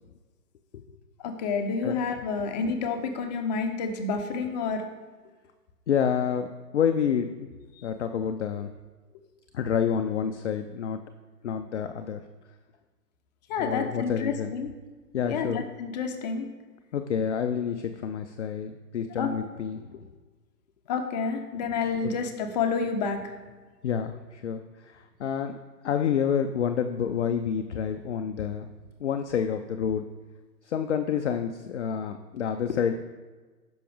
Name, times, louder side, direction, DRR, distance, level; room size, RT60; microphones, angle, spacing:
voice 1, 1.2-4.9 13.5-14.7 15.2-16.5 19.2-19.3 20.9-23.2, left 5 dB, 25° left, 5 dB, 0.8 m, -29 dB
voice 2, 5.9-7.5 7.8-8.7 9.5-11.0 11.4-12.2 13.6-14.5 15.1-15.6 16.9-20.1 23.8-25.6 25.8-28.7 29.0-30.0 30.7-32.9, left 7 dB, 45° left, 7 dB, 0.5 m, -28 dB
9.9 x 6.1 x 3.5 m, 1.3 s
figure-of-eight pair, 130°, 50 cm